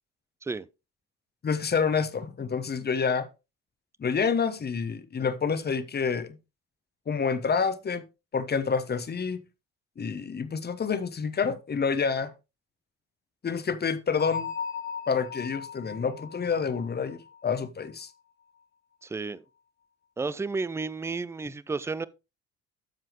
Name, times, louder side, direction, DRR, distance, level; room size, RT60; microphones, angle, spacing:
voice 1, 1.4-3.3 4.0-6.4 7.1-8.0 8.3-9.4 10.0-12.3 13.4-14.5 15.1-18.1, left 5 dB, 25° left, 1.0 m, -28 dB
Bell, 14.2-17.9, left 6 dB, 90° left, 1.2 m, -37 dB
voice 2, 19.0-19.4 20.2-22.1, right 4 dB, 5° right, 0.4 m, -32 dB
10.0 x 7.4 x 3.1 m
figure-of-eight pair, 55°, 38 cm